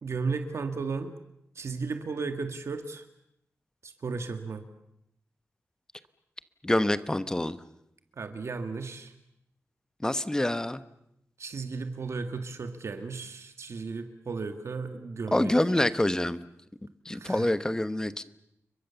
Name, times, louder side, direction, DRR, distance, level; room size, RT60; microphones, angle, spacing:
voice 1, 0.0-1.1 1.5-3.0 3.8-4.6 8.2-9.1 11.4-15.5 17.1-17.5, right 4 dB, 60° right, 7 dB, 1.9 m, -35 dB
voice 2, 6.6-7.6 10.0-10.8 15.3-16.5 17.0-18.2, left 1 dB, 15° left, 13 dB, 1.0 m, -26 dB
30.0 x 23.0 x 7.0 m, 0.79 s
wide cardioid pair, 140°, 5 cm